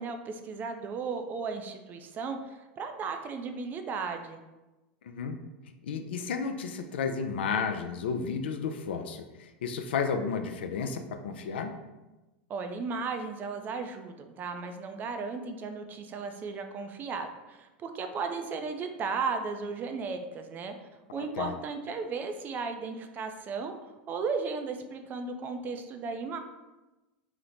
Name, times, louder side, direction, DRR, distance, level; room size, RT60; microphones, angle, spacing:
voice 1, 0.0-4.4 12.5-20.7 21.1-23.7 24.1-26.4, right 4 dB, 35° right, 6 dB, 0.4 m, -35 dB
voice 2, 5.0-5.4 5.8-9.2 9.6-11.7 21.3-21.5, left 5 dB, 85° left, 7 dB, 0.3 m, -32 dB
3.0 x 2.0 x 3.8 m, 1.1 s
hypercardioid pair, 105°, 6 cm